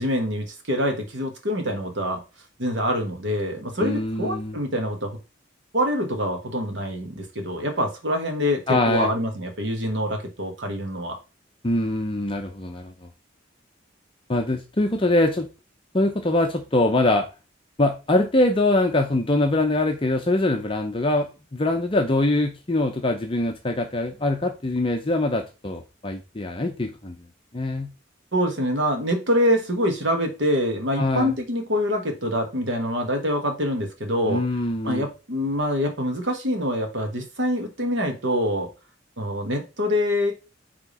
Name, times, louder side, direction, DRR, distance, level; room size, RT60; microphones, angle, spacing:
voice 1, 0.0-2.2 2.6-5.1 5.7-11.2 28.3-34.4 34.8-38.7 39.2-40.3, equal, 65° right, 4 dB, 1.5 m, -25 dB
voice 2, 3.8-4.6 8.7-9.1 11.6-12.9 14.3-15.5 15.9-17.3 17.8-27.1 27.5-27.9 31.0-31.3 34.2-35.1, left 2 dB, 25° left, 3 dB, 0.6 m, -23 dB
5.2 x 3.5 x 5.3 m, 0.29 s
head